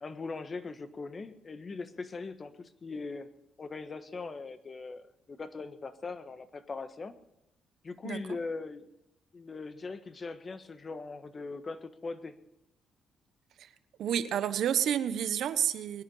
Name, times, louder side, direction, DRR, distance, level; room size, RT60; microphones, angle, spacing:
voice 1, 0.0-3.3 3.6-7.1 7.8-8.9 9.3-12.4, left 3 dB, 35° left, 10 dB, 1.4 m, -40 dB
voice 2, 14.0-16.0, right 9 dB, 75° right, 12 dB, 1.1 m, -29 dB
22.0 x 10.5 x 5.6 m, 0.81 s
cardioid pair, 90°, 0 cm